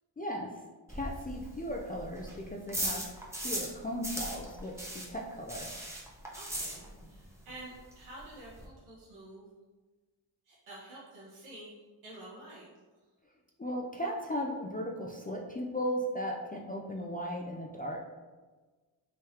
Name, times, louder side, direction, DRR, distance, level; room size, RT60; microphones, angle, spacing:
voice 1, 0.2-0.5 0.9-5.7 13.6-18.0, equal, 20° left, -1 dB, 0.4 m, -36 dB
sound 1, 0.9-7.2 7.5-7.6 7.9-8.0 8.2-8.7, right 1 dB, 5° right, 0.9 m, -38 dB
voice 2, 6.3-9.5 10.4-12.6, right 1 dB, 80° right, -8 dB, 1.3 m, -49 dB
3.6 x 3.1 x 2.8 m, 1.3 s
cardioid pair, 50°, 48 cm